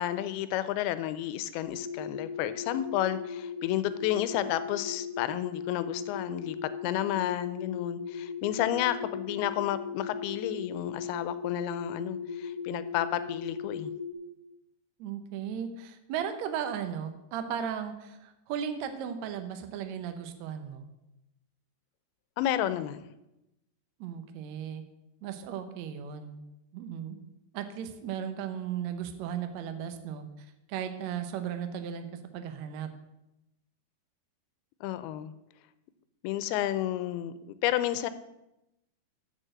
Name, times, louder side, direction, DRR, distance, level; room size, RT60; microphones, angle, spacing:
voice 1, 0.0-13.9 22.4-23.1 34.8-35.3 36.2-38.1, left 12 dB, 90° left, 13 dB, 2.5 m, -31 dB
sound 1, 1.6-14.1, left 6 dB, 70° left, 2.7 m, -38 dB
voice 2, 15.0-20.9 24.0-24.8 25.2-26.4 26.7-27.2 27.5-32.1 32.3-32.9, right 8 dB, 85° right, 8 dB, 1.5 m, -36 dB
6.7 x 6.5 x 7.6 m, 0.91 s
omnidirectional pair, 4.3 m